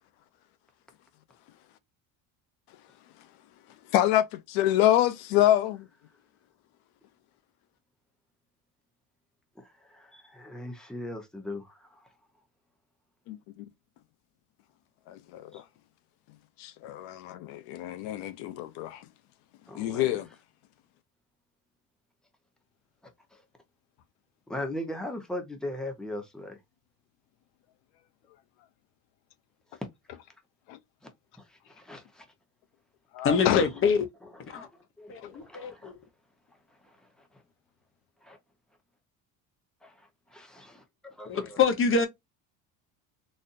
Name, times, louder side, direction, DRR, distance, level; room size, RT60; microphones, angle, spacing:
voice 1, 3.9-5.9 13.3-13.6 15.1-15.6 16.6-19.0 19.8-20.3 30.7-30.8 33.1-33.6, left 13 dB, 85° left, 0.7 m, -26 dB
voice 2, 9.6-12.1 15.5-15.6 19.7-20.2 23.3-23.4 24.5-26.6 31.5-32.3 34.5-34.7 35.0-35.9 36.8-37.3 38.2-38.4 39.8-41.6, left 1 dB, ahead, 0.8 m, -40 dB
voice 3, 33.2-34.1 34.5-34.7 35.1-36.0 41.3-42.1, left 5 dB, 35° left, 0.8 m, -25 dB
4.0 x 2.5 x 2.5 m
cardioid pair, 135°, 38 cm